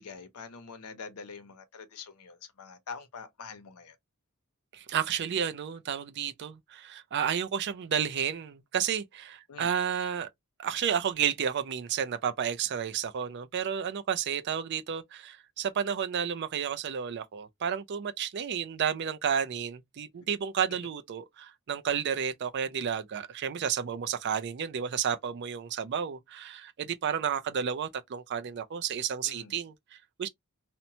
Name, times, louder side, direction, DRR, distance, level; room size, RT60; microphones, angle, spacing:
voice 1, 0.0-3.9 9.5-9.7 29.2-29.5, left 5 dB, 80° left, 0.6 m, -45 dB
voice 2, 4.7-10.3 10.6-30.3, right 8 dB, 50° right, 0.4 m, -31 dB
2.8 x 2.1 x 2.6 m
head